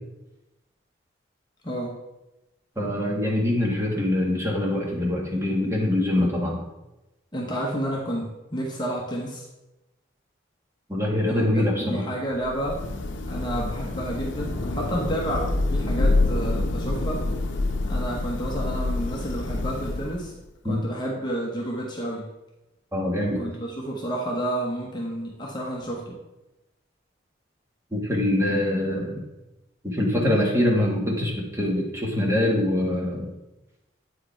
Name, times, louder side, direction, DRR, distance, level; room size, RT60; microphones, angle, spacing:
voice 1, 1.6-2.0 6.2-6.3 7.3-9.5 11.3-12.8 13.3-17.3 17.8-20.3 20.6-22.3 23.4-26.2, right 1 dB, 25° left, -2 dB, 1.0 m, -30 dB
voice 2, 2.8-6.6 10.9-12.0 20.6-20.8 22.9-23.4 27.9-29.2 29.8-33.3, left 1 dB, 15° right, -3 dB, 1.5 m, -24 dB
Thunder / Rain, 12.3-20.4, left 2 dB, 75° left, 0.7 m, -27 dB
8.5 x 4.9 x 4.5 m, 0.98 s
head